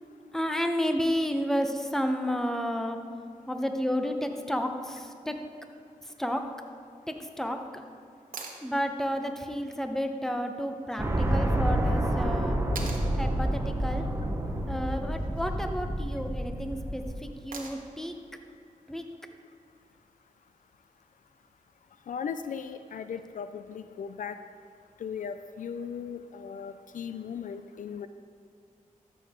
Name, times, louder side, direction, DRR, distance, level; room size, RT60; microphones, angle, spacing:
voice 1, 0.3-3.0 3.5-5.4 6.0-6.4 7.1-7.8 8.6-12.6 13.1-14.1 14.7-18.1 18.9-19.0, equal, 5° left, 5 dB, 0.9 m, -31 dB
sound 1, 8.3-8.6 10.9-11.0 12.8-13.1 15.1-15.5 17.5-18.0 20.1-20.2, right 4 dB, 80° right, 1.1 m, -41 dB
sound 2, 11.0-17.2, right 1 dB, 20° right, 1.1 m, -28 dB
voice 2, 22.1-24.4 25.0-28.1, left 7 dB, 70° left, 11 dB, 0.4 m, -37 dB
13.0 x 6.9 x 3.7 m, 2.5 s
cardioid pair, 60°, 14 cm